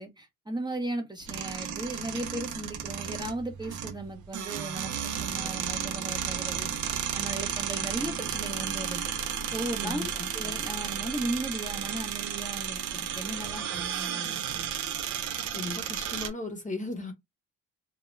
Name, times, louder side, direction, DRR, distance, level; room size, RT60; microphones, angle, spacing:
voice 1, 0.0-6.7 7.1-9.1 9.5-10.1 10.3-14.8, right 1 dB, 15° right, 0.7 m, -36 dB
sound 1, 1.2-16.3, right 8 dB, 75° right, 0.6 m, -33 dB
voice 2, 9.8-10.3 15.5-17.1, left 2 dB, 25° left, 0.8 m, -36 dB
2.3 x 2.1 x 3.1 m
cardioid pair, 90°, 30 cm